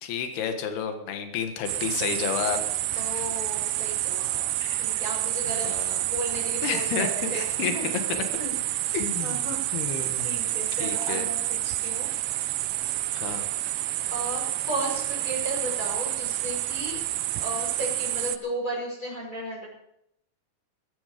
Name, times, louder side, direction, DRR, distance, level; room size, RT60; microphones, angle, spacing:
voice 1, 0.0-2.6 2.9-3.0 4.6-5.0 5.5-6.0 6.6-7.7 8.1-8.2 8.9-9.4 9.7-10.5 10.8-11.3 13.1-13.5, left 7 dB, 80° left, 6 dB, 3.6 m, -31 dB
sound 1, 1.7-18.4, right 15 dB, 80° right, 2.1 m, -29 dB
voice 2, 2.9-4.4 4.8-5.7 6.0-8.1 8.4-8.9 9.2-9.8 10.2-12.1 14.1-17.0 17.4-19.7, equal, 20° left, -4 dB, 6.0 m, -35 dB
14.5 x 14.5 x 5.2 m, 0.76 s
omnidirectional pair, 4.6 m